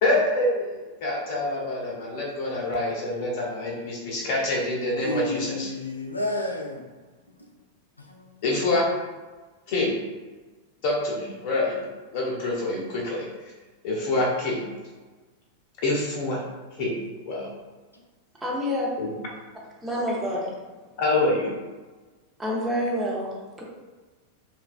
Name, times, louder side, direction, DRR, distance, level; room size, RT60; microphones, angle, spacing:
voice 1, 0.0-5.7 8.4-8.9 9.7-10.0 10.8-11.9 12.1-13.3 13.8-14.7 15.8-16.4 16.8-17.5 19.0-19.1 21.0-21.6, left 2 dB, 45° left, -2 dB, 0.7 m, -26 dB
voice 2, 5.0-6.8 8.0-8.3, left 1 dB, 85° left, -1 dB, 0.3 m, -30 dB
voice 3, 18.4-18.9 19.8-20.5 22.4-23.6, equal, 10° right, -4 dB, 0.6 m, -27 dB
3.1 x 2.3 x 2.2 m, 1.3 s
figure-of-eight pair, 90°, 0 cm